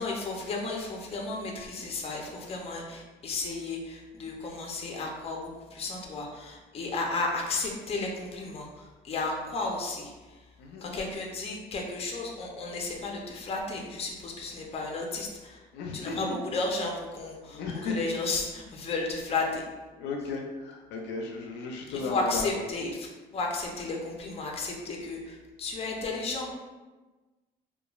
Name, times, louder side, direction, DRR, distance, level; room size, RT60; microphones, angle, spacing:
voice 1, 0.0-10.4 10.8-15.6 15.9-19.6 21.9-26.6, left 3 dB, 35° left, 0 dB, 0.5 m, -33 dB
voice 2, 10.6-11.0 15.7-16.4 17.5-18.0 20.0-22.6, left 4 dB, 90° left, 1 dB, 0.4 m, -35 dB
3.0 x 2.2 x 2.3 m, 1.2 s
cardioid pair, 110°, 17 cm